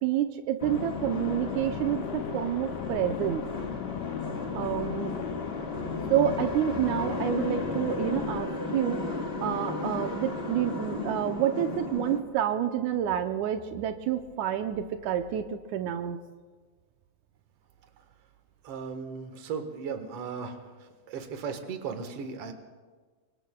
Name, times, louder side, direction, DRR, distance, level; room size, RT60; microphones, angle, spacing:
voice 1, 0.0-3.4 4.5-5.1 6.1-16.2, right 10 dB, 85° right, 6 dB, 2.1 m, -29 dB
sound 1, 0.6-8.4, left 11 dB, 80° left, 1.4 m, -37 dB
sound 2, 0.6-12.2, left 3 dB, 35° left, 1.1 m, -35 dB
voice 2, 18.6-20.6 21.1-22.5, right 6 dB, 60° right, 6 dB, 2.2 m, -36 dB
26.5 x 24.0 x 2.3 m, 1.4 s
omnidirectional pair, 3.4 m